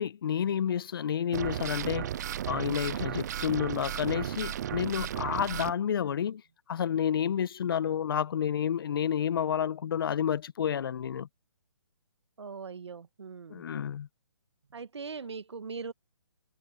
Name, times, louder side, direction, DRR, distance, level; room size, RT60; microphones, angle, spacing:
voice 1, 0.0-2.1 2.5-6.4 6.7-11.3 13.5-14.1, left 8 dB, 55° left, 1.1 m, -30 dB
sound 1, 1.3-5.7, right 11 dB, 40° right, 0.5 m, -34 dB
voice 2, 12.4-13.6 14.7-15.9, right 5 dB, 75° right, 1.6 m, -40 dB
hypercardioid pair, 145°, 14 cm